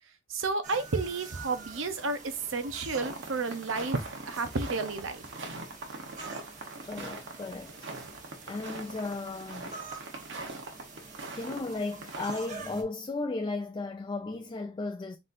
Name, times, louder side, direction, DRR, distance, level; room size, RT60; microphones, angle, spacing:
voice 1, 0.3-5.2, right 3 dB, 85° right, 0.7 m, -31 dB
sound 1, 0.6-12.8, right 4 dB, 40° right, 1.1 m, -47 dB
sound 2, 2.9-11.7 11.9-12.4, right 2 dB, 65° right, 1.0 m, -42 dB
voice 2, 6.8-7.9 8.5-10.0 11.3-15.2, left 3 dB, 25° left, 0.4 m, -35 dB
4.1 x 3.8 x 2.6 m
head